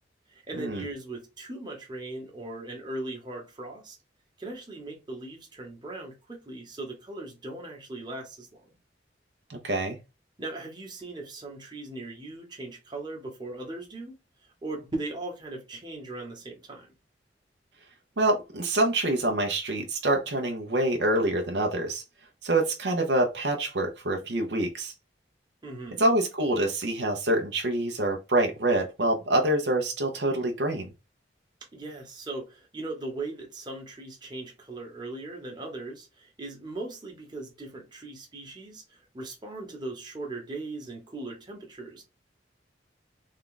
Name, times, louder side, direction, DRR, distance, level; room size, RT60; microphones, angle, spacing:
voice 1, 0.3-4.0 4.4-8.7 10.4-14.2 14.6-16.9 25.6-26.0 31.7-42.0, right 2 dB, 25° right, 1.1 m, -39 dB
voice 2, 9.5-10.0 18.2-22.0 22.4-24.9 26.0-30.9, right 1 dB, 65° right, 0.7 m, -26 dB
3.7 x 2.3 x 3.8 m
head